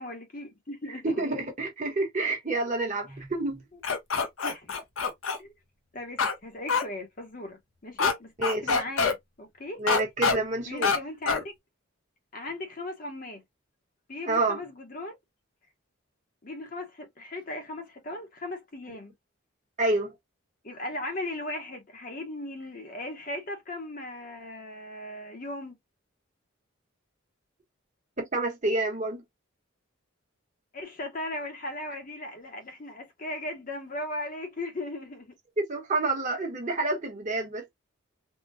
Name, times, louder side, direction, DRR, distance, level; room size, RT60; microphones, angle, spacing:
voice 1, 0.0-1.3 4.4-4.8 5.4-5.5 5.9-9.8 10.7-11.5 12.3-13.4 14.1-15.1 16.4-19.1 20.6-25.8 30.7-35.3, left 1 dB, 40° left, 0.8 m, -38 dB
voice 2, 1.0-3.6 8.4-8.8 9.8-10.9 14.3-14.6 19.8-20.1 28.2-29.2 35.6-37.7, right 2 dB, 35° right, 1.1 m, -28 dB
sound 1, 3.8-5.4 6.2-6.3 6.7-6.8 8.0-8.1 8.4-9.1 9.9-10.4 10.8-11.0 11.3-11.4, left 5 dB, 70° left, 0.8 m, -25 dB
3.6 x 2.2 x 2.6 m
head